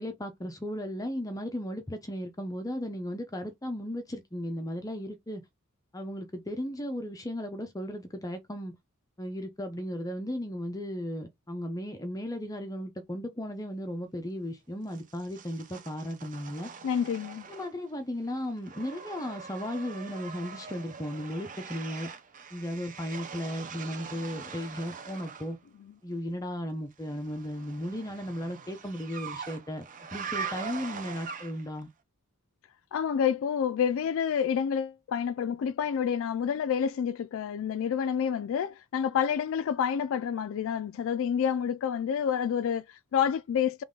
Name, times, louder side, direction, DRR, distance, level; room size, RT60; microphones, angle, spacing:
voice 1, 0.0-5.4 5.9-8.7 9.2-16.7 17.5-22.1 22.5-25.6 26.0-29.9 30.1-31.9, equal, 15° left, 0.6 m, -35 dB
sound 1, 14.9-18.0 18.3-25.5 27.1-31.8, right 6 dB, 35° right, 0.7 m, -42 dB
voice 2, 16.8-17.5 32.9-43.8, left 8 dB, 60° left, 0.3 m, -28 dB
3.8 x 3.1 x 3.7 m
head